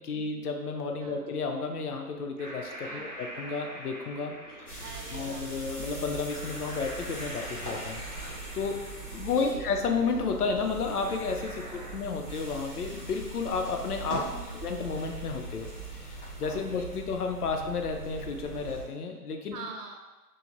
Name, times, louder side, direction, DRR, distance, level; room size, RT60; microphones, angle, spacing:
voice 1, 0.0-4.7 5.1-8.2 8.5-8.8 9.1-15.7 16.0-19.6, left 4 dB, 70° left, 4 dB, 0.5 m, -32 dB
sound 1, 2.4-12.0, right 1 dB, 50° right, 0.8 m, -45 dB
voice 2, 2.8-3.2 4.8-5.5 9.4-9.7 11.6-11.9 14.2-14.7 16.5-16.8 19.5-20.0, right 4 dB, 75° right, 2 dB, 0.6 m, -45 dB
sound 2, 4.7-18.8, right 2 dB, 5° left, 0.6 m, -41 dB
3.1 x 2.0 x 2.5 m, 1.2 s
figure-of-eight pair, 150°, 47 cm